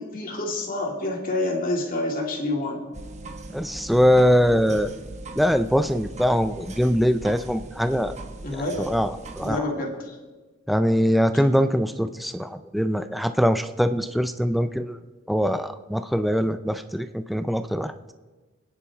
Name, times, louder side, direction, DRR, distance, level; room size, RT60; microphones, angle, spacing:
voice 1, 0.0-2.8 8.4-8.9 9.4-10.1, left 2 dB, 45° left, 0 dB, 2.6 m, -28 dB
sound 1, 2.9-9.6, right 2 dB, 35° right, 1.1 m, -40 dB
voice 2, 3.5-4.9 5.4-8.2 8.5-9.6 10.7-15.0 15.3-17.9, equal, ahead, 9 dB, 0.4 m, -22 dB
30.0 x 10.0 x 3.6 m, 1.3 s
head